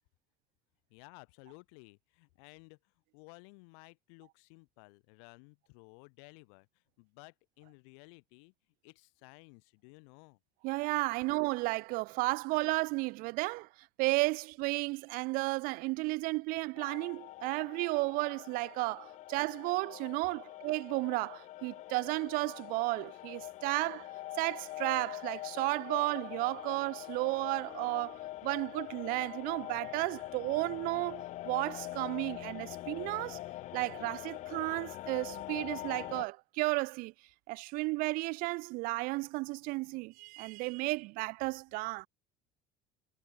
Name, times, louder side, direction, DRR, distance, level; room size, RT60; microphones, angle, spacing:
voice 1, 0.9-8.5 8.8-10.4, left 40 dB or more, 75° left, 4.6 m, -56 dB
voice 2, 10.6-13.7 14.0-24.1 24.4-33.4 33.7-37.1 37.5-42.1, right 24 dB, 70° right, 0.9 m, -33 dB
sound 1, 16.8-36.2, left 15 dB, 50° left, 0.5 m, -44 dB
supercardioid pair, 85°, 15 cm